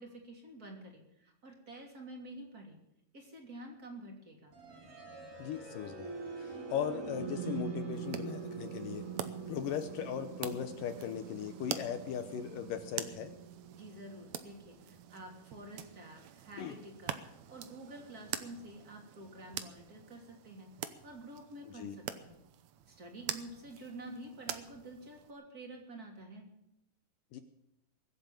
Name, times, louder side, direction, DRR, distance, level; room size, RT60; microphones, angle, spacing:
voice 1, 0.0-2.8 3.1-4.5 13.7-17.2 17.5-20.7 21.0-22.4 22.9-26.5, right 1 dB, 25° right, 1 dB, 3.0 m, -49 dB
sound 1, 4.5-16.4, right 5 dB, 50° right, 5.1 m, -44 dB
voice 2, 5.4-6.1 6.4-9.0 9.5-13.3 16.6-16.8 21.7-22.0 27.3-27.4, left 8 dB, 70° left, 8 dB, 2.3 m, -38 dB
sound 2, 7.9-25.3, right 10 dB, 85° right, 1.6 m, -46 dB
22.0 x 8.0 x 7.4 m, 0.83 s
omnidirectional pair, 4.5 m